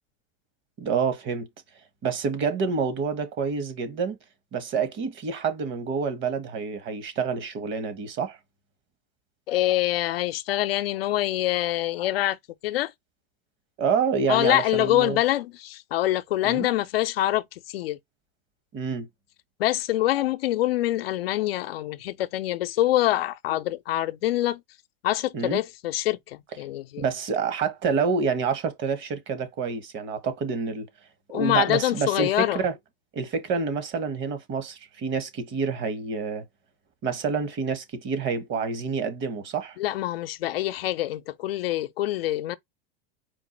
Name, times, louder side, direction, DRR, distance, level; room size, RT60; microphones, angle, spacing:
voice 1, 0.8-1.5 2.0-4.2 4.5-8.4 13.8-15.2 16.4-16.7 18.7-19.1 25.3-25.6 27.0-30.9 31.3-32.7 33.1-36.4 37.0-39.7, right 5 dB, 40° right, 1.2 m, -28 dB
voice 2, 9.5-12.4 12.6-12.9 14.3-18.0 19.6-24.6 25.0-27.1 31.3-32.7 39.8-42.6, left 14 dB, 80° left, 0.6 m, -25 dB
4.6 x 2.1 x 4.2 m
hypercardioid pair, 105°, 29 cm